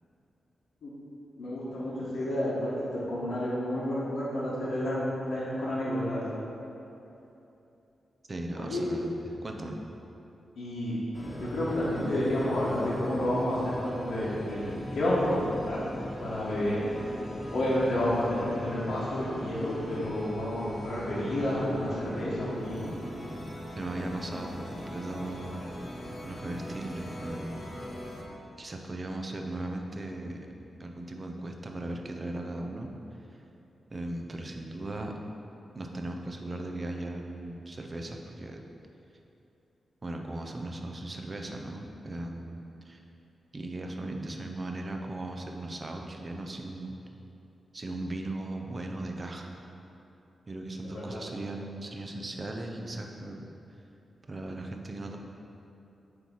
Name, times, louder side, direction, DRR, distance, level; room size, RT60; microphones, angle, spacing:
voice 1, 1.4-6.2 8.5-8.8 10.6-11.0 11.4-15.8 16.2-16.8 17.5-22.9 50.9-51.2, left 1 dB, 90° left, -10 dB, 1.5 m, -30 dB
voice 2, 8.3-9.8 23.7-25.7 26.2-27.6 28.6-30.5 30.8-32.9 33.3-33.4 33.9-35.1 35.7-38.6 40.0-42.6 42.8-43.0 43.5-47.0 47.7-49.5 50.5-53.5 54.3-55.2, right 2 dB, 30° right, 2 dB, 0.6 m, -37 dB
sound 1, 11.1-28.2, equal, 35° left, 1.1 m, -39 dB
7.9 x 3.1 x 5.6 m, 2.9 s
wide cardioid pair, 120°, 0 cm